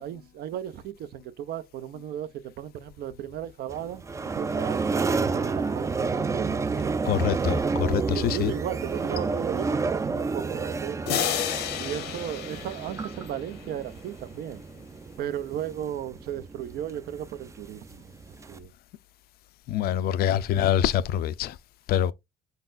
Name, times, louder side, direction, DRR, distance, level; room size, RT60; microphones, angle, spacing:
voice 1, 0.0-4.0 4.4-4.8 5.1-7.1 8.0-11.3 11.8-14.6 15.2-18.7, right 10 dB, 65° right, 0.5 m, -35 dB
sound 1, 3.7-18.6, right 4 dB, 20° right, 0.3 m, -30 dB
voice 2, 7.1-8.5 19.7-21.5 21.9-22.1, left 10 dB, 65° left, 0.4 m, -25 dB
sound 2, 11.1-13.7, left 9 dB, 90° left, 0.9 m, -31 dB
5.3 x 4.0 x 2.5 m
cardioid pair, 110°, 17 cm